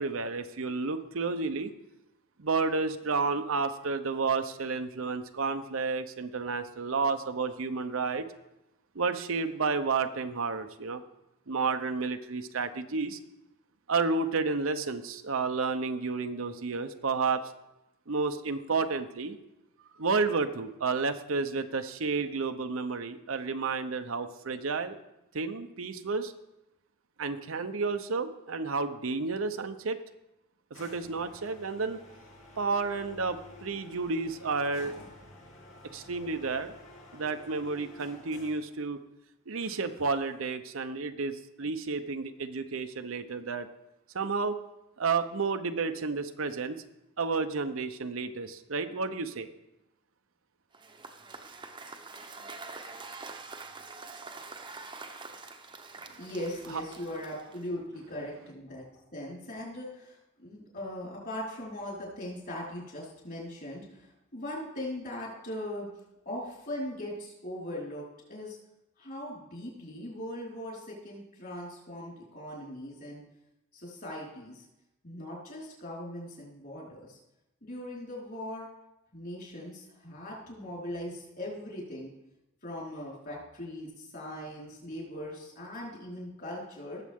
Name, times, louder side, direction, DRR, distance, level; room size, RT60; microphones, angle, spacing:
voice 1, 0.0-1.7 2.4-8.2 8.9-11.0 11.5-13.2 13.9-17.4 18.1-19.4 20.0-25.0 25.3-26.3 27.2-30.0 30.7-32.0 32.6-35.0 35.9-36.7 37.1-39.0 39.5-43.7 44.1-44.6 45.0-46.8 47.2-49.5 56.7-56.8, right 4 dB, 75° right, 8 dB, 0.8 m, -31 dB
sound 1, 30.7-38.8 39.6-40.5, left 1 dB, 90° left, 2.7 m, -51 dB
Cheering / Applause / Crowd, 50.7-57.8, right 3 dB, 25° right, 0.9 m, -45 dB
voice 2, 56.2-58.8 59.1-65.9 66.2-68.6 69.0-73.2 73.7-74.6 75.0-77.2 77.6-78.7 79.1-82.1 82.6-87.0, left 1 dB, 50° left, -4 dB, 4.7 m, -40 dB
18.5 x 7.4 x 3.7 m, 0.91 s
head